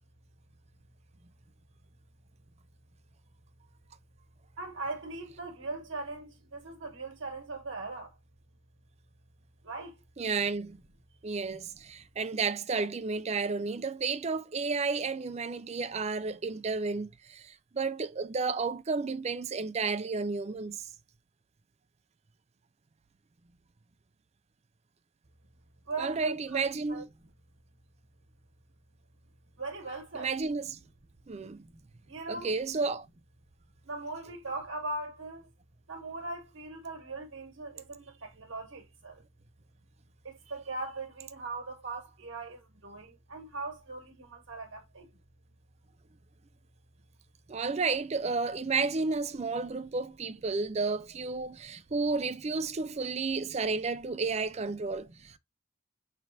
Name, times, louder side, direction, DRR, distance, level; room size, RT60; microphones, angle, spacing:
voice 1, 4.6-8.2 9.6-10.0 11.5-11.6 25.9-26.3 26.6-27.0 29.6-30.3 31.6-31.8 32.1-32.5 33.8-35.5 35.9-39.2 40.2-45.1, right 3 dB, 80° right, 1.3 m, -40 dB
voice 2, 10.2-10.8 11.2-20.9 26.0-27.1 30.1-30.8 31.3-31.6 32.3-33.1 47.5-55.4, right 4 dB, 30° right, 0.4 m, -32 dB
5.9 x 3.3 x 2.7 m
head